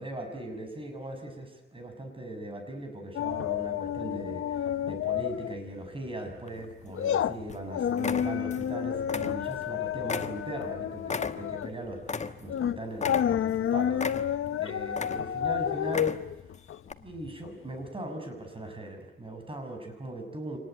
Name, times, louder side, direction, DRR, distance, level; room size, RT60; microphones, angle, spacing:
voice 1, 0.0-14.2 14.5-16.2 17.0-20.6, right 1 dB, 25° right, 5 dB, 6.3 m, -39 dB
sound 1, 3.2-5.6 5.9-6.1 6.5-17.5 17.8-17.9, left 9 dB, 80° left, 0.8 m, -30 dB
sound 2, 6.5-7.1 7.5-7.7 8.0-8.7 9.0-9.7 10.1-12.6 13.0-13.6 14.0-14.5 14.9-15.5 15.8-16.4 16.9-17.0, left 4 dB, 35° left, 1.2 m, -35 dB
26.5 x 19.5 x 9.2 m, 1.0 s
cardioid pair, 105°, 21 cm